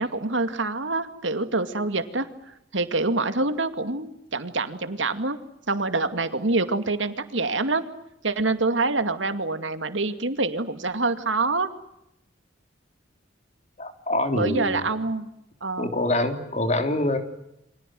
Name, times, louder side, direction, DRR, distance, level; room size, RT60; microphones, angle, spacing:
voice 1, 0.0-2.3 2.7-5.4 5.7-7.8 8.2-11.7 14.3-15.3 15.6-15.9, right 3 dB, 85° right, 9 dB, 2.4 m, -26 dB
voice 2, 13.8-14.8 15.8-17.2, left 1 dB, 40° left, 6 dB, 3.4 m, -25 dB
29.0 x 25.0 x 7.8 m, 0.82 s
head